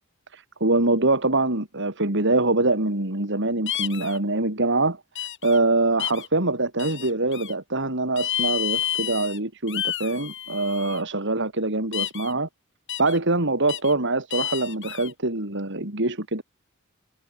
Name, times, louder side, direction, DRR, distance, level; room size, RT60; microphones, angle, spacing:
voice 1, 0.3-5.0 5.4-12.5 13.0-16.4, right 2 dB, 55° right, 3.9 m, -24 dB
sound 1, 3.7-4.2 5.1-5.6 6.0-6.3 6.8-7.5 8.2-9.4 9.7-11.0 11.9-12.3 12.9-13.2 13.7-13.9 14.3-15.1, left 11 dB, 60° left, 7.2 m, -30 dB
head